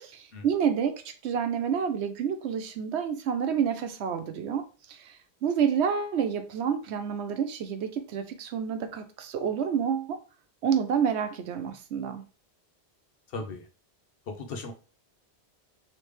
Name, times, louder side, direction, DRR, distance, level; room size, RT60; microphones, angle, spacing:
voice 1, 0.0-10.2 10.6-12.2, right 7 dB, 90° right, 0.9 m, -29 dB
voice 2, 13.3-13.7 14.3-14.7, left 3 dB, 65° left, 0.9 m, -37 dB
3.3 x 3.3 x 3.2 m
omnidirectional pair, 1.1 m